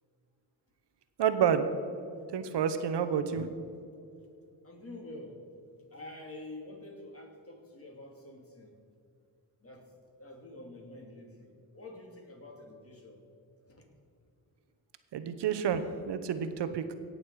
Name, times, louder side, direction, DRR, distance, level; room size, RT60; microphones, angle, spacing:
voice 1, 1.2-1.7 2.3-3.5 15.1-16.9, right 8 dB, 60° right, 10 dB, 1.1 m, -29 dB
voice 2, 4.6-5.4 5.9-8.7 9.6-9.9 10.2-13.2 13.7-13.8, left 2 dB, 30° left, 1 dB, 2.9 m, -47 dB
18.0 x 6.9 x 4.9 m, 2.6 s
supercardioid pair, 55°, 46 cm